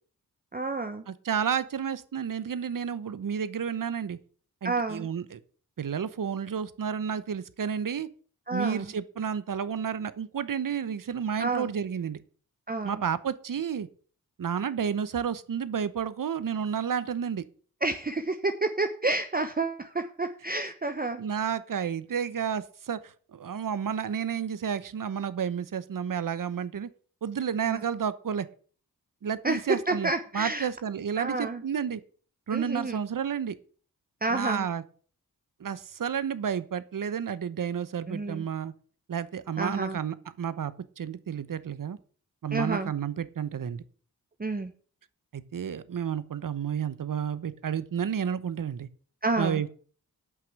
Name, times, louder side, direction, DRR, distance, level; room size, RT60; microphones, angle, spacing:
voice 1, 0.5-1.0 4.6-5.1 8.5-8.9 11.4-11.7 12.7-13.0 17.8-21.2 27.7-27.8 29.4-29.6 29.9-30.7 31.2-31.6 32.5-33.0 34.2-34.6 38.1-38.4 39.6-40.0 42.5-42.9 44.4-44.7 49.2-49.6, right 3 dB, 25° right, 8 dB, 1.0 m, -29 dB
voice 2, 1.1-4.2 4.6-5.4 5.8-8.1 8.5-12.2 12.8-13.9 14.4-17.4 21.2-26.9 27.2-28.5 29.2-32.0 32.5-33.5 34.3-34.8 35.6-38.7 39.1-42.0 42.4-43.8 45.3-48.9 49.4-49.7, right 7 dB, 60° right, 16 dB, 1.0 m, -31 dB
8.4 x 6.0 x 8.1 m, 0.43 s
cardioid pair, 50°, 37 cm